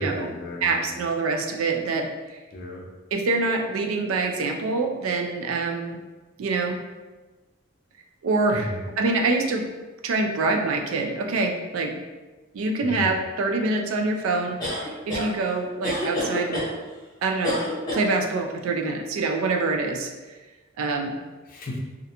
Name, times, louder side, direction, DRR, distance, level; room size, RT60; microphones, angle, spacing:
voice 1, 0.0-0.9 2.5-2.8 8.5-8.8 12.8-13.1 21.5-21.8, left 1 dB, 45° left, -1 dB, 0.5 m, -34 dB
voice 2, 0.6-2.1 3.1-6.0 6.4-6.8 8.2-9.7 10.0-11.9 12.5-16.7 17.2-17.6 17.9-20.1 20.8-21.2, right 3 dB, 80° right, 4 dB, 0.3 m, -25 dB
sound 1, 14.6-15.3 15.8-16.7 17.4-18.1, left 1 dB, 20° left, 0.8 m, -27 dB
2.4 x 2.2 x 2.7 m, 1.2 s
head